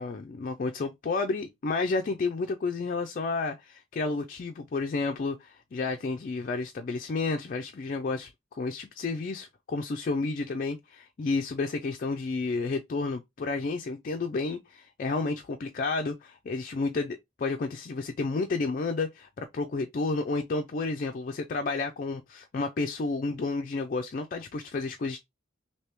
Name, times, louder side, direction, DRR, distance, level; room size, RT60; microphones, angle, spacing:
voice 1, 0.0-25.2, left 3 dB, 40° left, 0.3 m, -31 dB
3.3 x 2.8 x 2.9 m
head